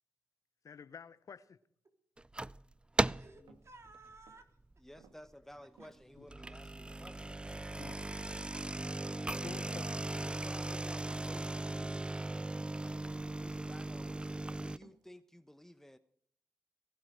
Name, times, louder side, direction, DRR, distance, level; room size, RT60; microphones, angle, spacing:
voice 1, 0.6-1.6 6.2-6.3 7.8-8.0 9.4-10.0, left 6 dB, 55° left, 0.9 m, -49 dB
sound 1, 2.2-2.6 3.0-3.4 3.9-4.2 4.7-4.8 5.1-5.2 6.1-14.8, right 2 dB, 15° right, 0.5 m, -37 dB
voice 2, 3.1-4.6 5.8-5.9 7.4-9.1, right 3 dB, 45° right, 3.7 m, -58 dB
sound 2, 3.5-3.8 4.2-4.5 5.0-5.2 5.8-6.7 7.2-7.6 8.0-8.4 8.9-9.2 9.6-10.0 10.2-10.6 11.1-11.4 11.8-12.2 12.5-12.9 13.3-13.8 14.1-14.3 14.8-15.1, right 6 dB, 85° right, 1.5 m, -63 dB
voice 3, 4.8-8.0 10.3-12.5 12.8-14.3 14.6-16.0, left 1 dB, 5° left, 1.0 m, -55 dB
18.5 x 12.0 x 4.9 m
supercardioid pair, 40°, 7 cm